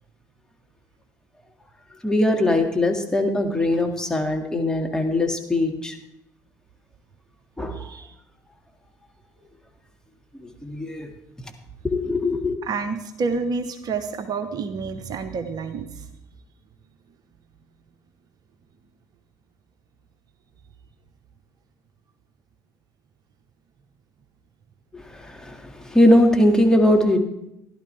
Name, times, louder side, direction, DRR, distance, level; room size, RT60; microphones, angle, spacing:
voice 1, 2.0-5.9 7.6-7.8 10.6-11.1 11.8-12.6 24.9-25.0 25.3-25.6 25.9-27.2, left 1 dB, 5° left, 2 dB, 2.1 m, -20 dB
voice 2, 7.7-8.1 12.6-16.1, right 4 dB, 45° right, 8 dB, 1.0 m, -29 dB
15.5 x 11.5 x 3.4 m, 0.85 s
figure-of-eight pair, 60°, 9 cm